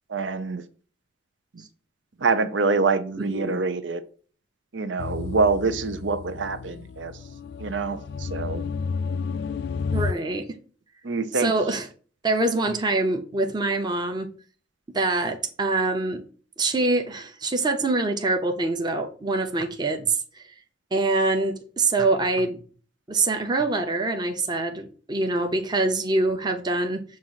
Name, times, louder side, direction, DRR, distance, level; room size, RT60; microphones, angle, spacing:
voice 1, 0.1-0.6 2.2-4.0 4.7-7.1 7.6-8.6 11.0-11.5, right 4 dB, 85° right, 0.7 m, -25 dB
voice 2, 3.3-3.6 9.9-10.4 11.3-11.9 12.2-14.3 14.9-16.2 16.6-20.4 20.9-22.6 23.1-27.0, right 2 dB, 25° right, 0.8 m, -25 dB
sound 1, 5.0-10.1, left 5 dB, 60° left, 0.3 m, -31 dB
7.5 x 2.6 x 5.6 m
head